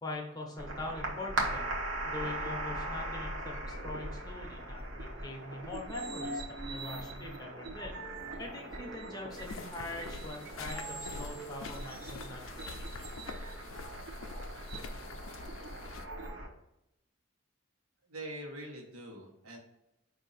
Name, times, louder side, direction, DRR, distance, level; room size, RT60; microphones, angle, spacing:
voice 1, 0.0-1.7 2.0-8.0 8.4-12.9, left 2 dB, 20° left, 0 dB, 0.6 m, -43 dB
sound 1, 0.6-16.5, right 2 dB, 60° right, 0.9 m, -40 dB
sound 2, 9.3-16.1, left 3 dB, 65° left, 0.4 m, -45 dB
voice 2, 18.1-19.6, right 1 dB, 90° right, 0 dB, 1.1 m, -44 dB
5.0 x 2.7 x 4.0 m, 0.87 s
head